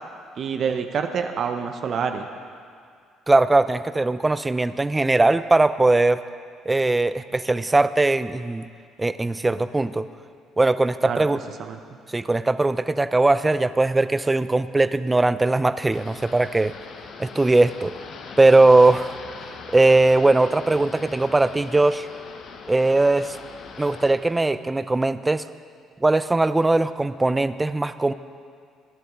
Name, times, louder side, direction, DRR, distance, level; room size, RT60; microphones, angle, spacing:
voice 1, 0.4-2.3 11.0-11.2 11.6-11.8, right 6 dB, 55° right, 6 dB, 0.7 m, -27 dB
voice 2, 3.3-6.2 6.7-8.6 9.0-10.1 10.6-11.4 12.1-16.7 17.2-17.9 18.4-19.2 19.7-22.1 22.7-23.4 23.8-25.4 26.0-28.1, right 2 dB, 20° right, 14 dB, 0.5 m, -19 dB
sound 1, 15.9-24.1, left 5 dB, 60° left, 1.1 m, -40 dB
18.5 x 10.5 x 3.8 m, 2.2 s
hypercardioid pair, 55°, 0 cm